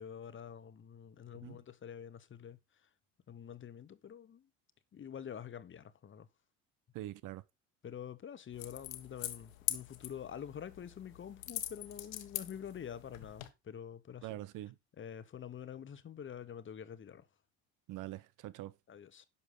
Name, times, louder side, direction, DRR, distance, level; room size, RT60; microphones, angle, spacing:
voice 1, 0.0-2.6 3.3-4.5 4.9-6.3 7.8-14.3 15.0-17.3 18.9-19.2, left 8 dB, 30° left, 1.1 m, -47 dB
voice 2, 6.9-7.4 14.2-14.7 17.9-18.7, right 15 dB, 50° right, 0.9 m, -44 dB
sound 1, 8.5-13.5, left 14 dB, 75° left, 1.3 m, -43 dB
11.0 x 7.1 x 3.8 m
hypercardioid pair, 65°, 41 cm